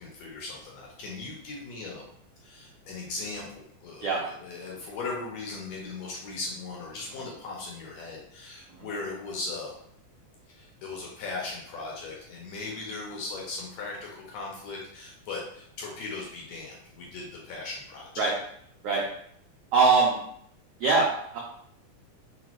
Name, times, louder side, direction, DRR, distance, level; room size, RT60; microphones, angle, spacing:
voice 1, 0.0-2.0 2.4-9.7 10.5-18.3, left 3 dB, 70° left, -2 dB, 1.8 m, -38 dB
voice 2, 19.7-20.2 20.8-21.4, right 4 dB, 90° right, -3 dB, 1.3 m, -22 dB
5.0 x 2.2 x 3.0 m, 0.67 s
omnidirectional pair, 3.6 m